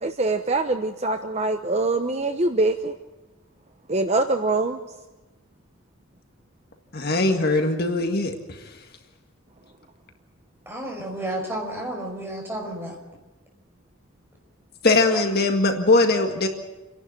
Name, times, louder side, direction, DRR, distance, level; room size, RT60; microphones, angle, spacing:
voice 1, 0.0-2.9 3.9-4.8, right 2 dB, 30° right, 7 dB, 0.9 m, -23 dB
voice 2, 6.9-8.8 14.8-16.5, left 2 dB, 50° left, 4 dB, 1.9 m, -21 dB
voice 3, 10.7-12.9, right 1 dB, 10° right, 0 dB, 5.5 m, -31 dB
29.0 x 11.5 x 9.0 m, 1.1 s
head